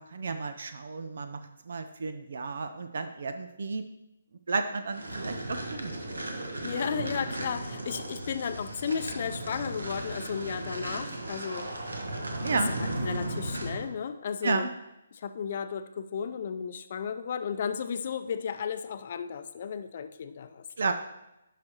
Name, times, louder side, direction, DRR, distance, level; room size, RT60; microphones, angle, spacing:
voice 1, 0.0-3.8 4.5-6.1 12.4-12.7 14.4-14.7 20.8-20.9, right 4 dB, 60° right, 9 dB, 0.5 m, -32 dB
sound 1, 4.9-13.9, right 1 dB, 80° right, 1.2 m, -36 dB
voice 2, 6.6-11.7 12.7-14.7 15.1-20.6, left 7 dB, 50° left, 9 dB, 0.5 m, -34 dB
11.5 x 4.9 x 3.0 m, 0.90 s
figure-of-eight pair, 140°, 0 cm